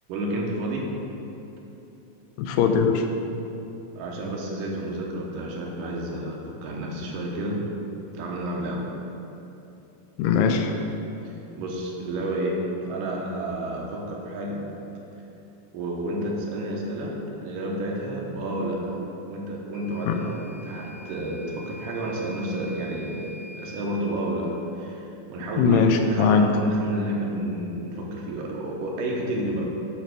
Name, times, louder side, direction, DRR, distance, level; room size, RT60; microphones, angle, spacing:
voice 1, 0.1-0.8 4.0-7.6 8.1-8.8 11.2-14.7 15.7-19.0 19.3-29.7, right 1 dB, 85° right, -2 dB, 2.6 m, -30 dB
voice 2, 2.4-3.1 10.2-10.7 20.1-20.2 25.6-26.5, left 6 dB, 85° left, 5 dB, 2.3 m, -20 dB
Microwave oven / Alarm, 19.7-23.8, equal, 60° left, 2.4 m, -45 dB
9.0 x 3.4 x 6.2 m, 2.9 s
omnidirectional pair, 3.8 m